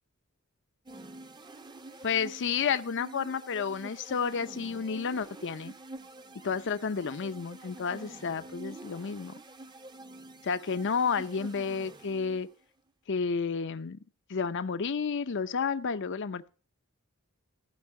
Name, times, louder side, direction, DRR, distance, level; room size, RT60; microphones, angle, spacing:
sound 1, 0.9-12.6, right 2 dB, 20° right, 0.7 m, -48 dB
voice 1, 2.0-5.7 6.4-9.3 10.4-12.5 13.1-14.0 14.3-16.5, left 5 dB, 55° left, 12 dB, 0.6 m, -31 dB
15.0 x 5.5 x 9.7 m, 0.38 s
head